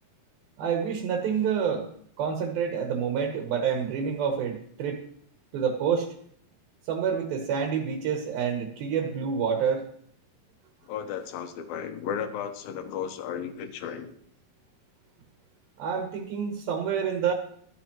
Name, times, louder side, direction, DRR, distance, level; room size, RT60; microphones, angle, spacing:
voice 1, 0.6-1.9 2.2-5.0 5.5-6.1 6.8-9.9 15.8-17.3, right 7 dB, 75° right, 3 dB, 3.0 m, -28 dB
voice 2, 10.9-14.1, left 8 dB, 75° left, 8 dB, 2.6 m, -34 dB
12.5 x 11.5 x 3.0 m, 0.65 s
omnidirectional pair, 4.4 m